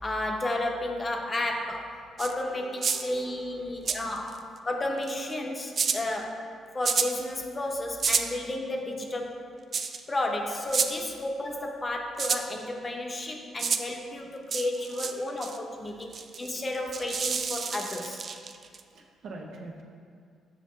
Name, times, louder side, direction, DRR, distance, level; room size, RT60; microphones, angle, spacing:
voice 1, 0.0-1.9 2.2-6.4 6.7-9.4 10.1-18.2, left 1 dB, 30° left, 2 dB, 0.7 m, -32 dB
sound 1, 2.2-2.3 2.8-3.1 3.9-4.4 5.0-5.3 5.8-6.0 6.8-7.1 8.0-8.3 9.7-10.0 10.7-10.9 12.2-12.4 13.6-13.8 14.5-15.1 15.4-15.6 16.1-18.8, right 5 dB, 50° right, 0.4 m, -29 dB
voice 2, 2.4-4.1 10.0-10.1 14.8-15.5 15.9-16.3 16.5-16.6 18.9-19.8, right 2 dB, 70° right, 0 dB, 0.8 m, -48 dB
7.1 x 5.5 x 3.1 m, 2.2 s
cardioid pair, 90°, 0 cm